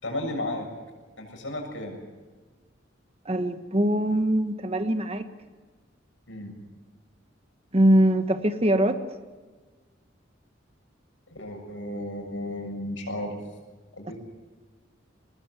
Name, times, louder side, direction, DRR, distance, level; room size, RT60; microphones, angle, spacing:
voice 1, 0.0-0.7 1.2-2.0 6.3-6.6 11.3-13.4 14.0-14.1, left 1 dB, 80° left, 2 dB, 7.2 m, -33 dB
voice 2, 3.2-5.2 7.7-9.0, right 1 dB, 30° right, 9 dB, 1.3 m, -22 dB
23.5 x 20.0 x 8.2 m, 1.4 s
head